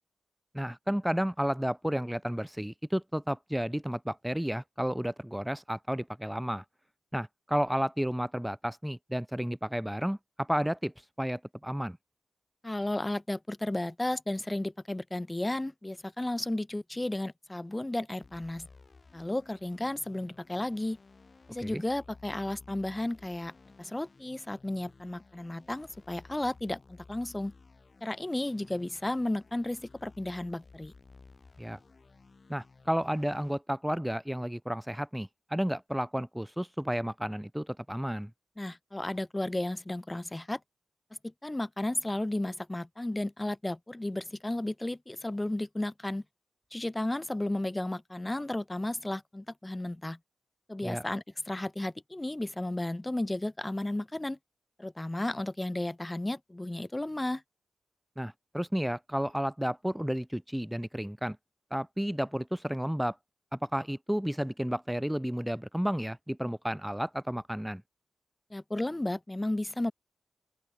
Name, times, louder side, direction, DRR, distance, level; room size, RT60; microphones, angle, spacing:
voice 1, 0.5-6.6 7.1-12.0 21.6-21.8 31.6-31.8 32.5-38.3 50.8-51.0 58.2-61.4 61.7-63.2 63.5-67.8, equal, 5° right, 0.5 m, -32 dB
voice 2, 12.6-18.7 19.1-21.0 21.5-23.5 23.8-27.5 28.0-30.9 38.6-40.6 41.2-46.2 46.7-50.2 50.7-54.4 54.8-57.4 68.5-69.9, left 1 dB, 20° left, 0.9 m, -33 dB
sound 1, 18.2-33.6, left 4 dB, 50° left, 5.0 m, -56 dB
open air
cardioid pair, 50°, 0 cm